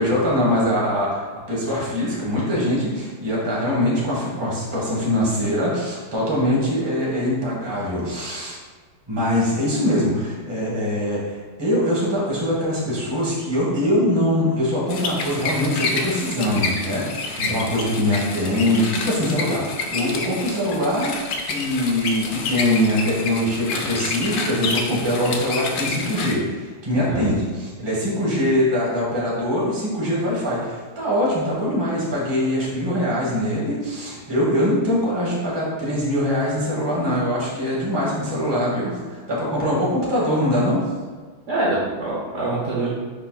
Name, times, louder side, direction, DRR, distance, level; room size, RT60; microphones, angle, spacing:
voice 1, 0.0-8.6 9.1-21.1 21.4-40.8, left 1 dB, 15° right, -6 dB, 0.8 m, -23 dB
sound 1, 14.9-26.3, left 4 dB, 80° left, 0.9 m, -28 dB
voice 2, 41.5-43.0, right 2 dB, 70° right, -6 dB, 0.7 m, -25 dB
4.9 x 4.7 x 2.3 m, 1.4 s
omnidirectional pair, 2.3 m